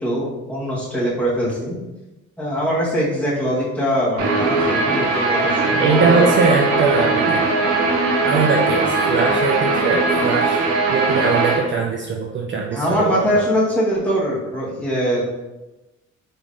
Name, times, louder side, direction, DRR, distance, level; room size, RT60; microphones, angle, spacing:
voice 1, 0.0-1.8 2.4-6.3 12.7-15.2, equal, 5° left, -7 dB, 1.3 m, -22 dB
Guitar, 4.2-11.6, right 3 dB, 80° right, 0.8 m, -19 dB
voice 2, 5.6-7.5 8.2-10.6 10.9-13.2, right 4 dB, 40° right, 0 dB, 0.4 m, -21 dB
3.6 x 3.0 x 2.5 m, 1.0 s
cardioid pair, 90°, 30 cm